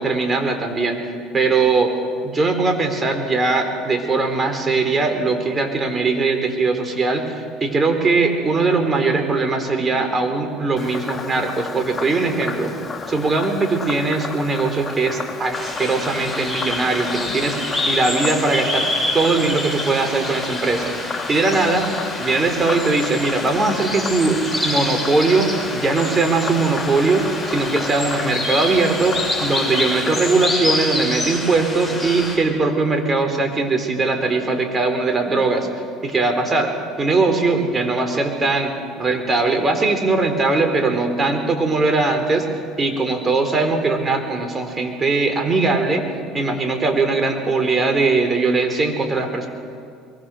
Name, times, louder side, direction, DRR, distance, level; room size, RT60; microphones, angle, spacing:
voice 1, 0.0-1.9 2.2-12.7 13.1-18.9 19.1-20.9 21.3-21.9 22.2-25.5 25.7-35.7 36.0-42.5 42.8-46.0 46.3-49.5, right 3 dB, 30° right, 6 dB, 4.1 m, -20 dB
Frog, 10.8-30.5, left 4 dB, 25° left, 2.3 m, -32 dB
sound 1, 15.5-32.4, left 2 dB, 5° left, 7.7 m, -27 dB
23.5 x 22.5 x 6.4 m, 2.3 s
hypercardioid pair, 75°, 0 cm